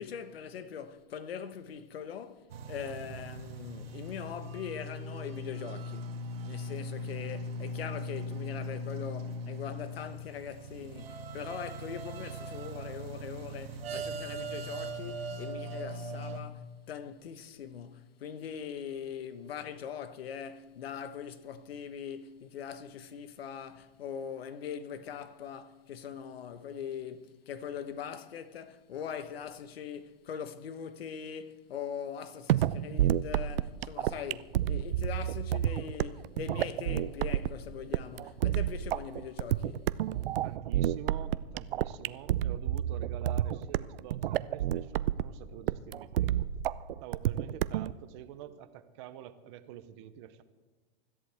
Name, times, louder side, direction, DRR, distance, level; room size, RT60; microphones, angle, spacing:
voice 1, 0.0-39.9, left 8 dB, 85° left, 1.2 m, -41 dB
sound 1, 2.5-16.4, equal, 90° right, 1.6 m, -40 dB
sound 2, 32.5-47.9, right 12 dB, 70° right, 0.6 m, -30 dB
voice 2, 40.4-46.5 47.0-50.4, right 11 dB, 30° right, 0.7 m, -47 dB
24.5 x 13.5 x 3.5 m
supercardioid pair, 165°, 29 cm